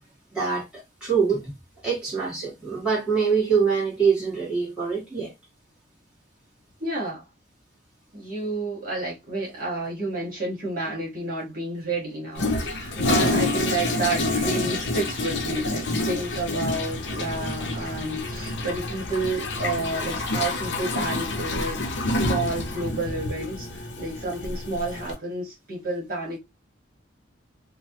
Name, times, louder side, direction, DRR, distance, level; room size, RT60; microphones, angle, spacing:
voice 1, 0.3-1.5 1.8-5.3 12.9-13.2, right 5 dB, 5° right, 1.5 m, -24 dB
voice 2, 6.8-7.2 8.1-26.4, right 2 dB, 45° right, 1.3 m, -30 dB
Toilet flush, 12.4-25.1, left 2 dB, 60° left, 0.6 m, -28 dB
3.1 x 2.2 x 2.8 m
head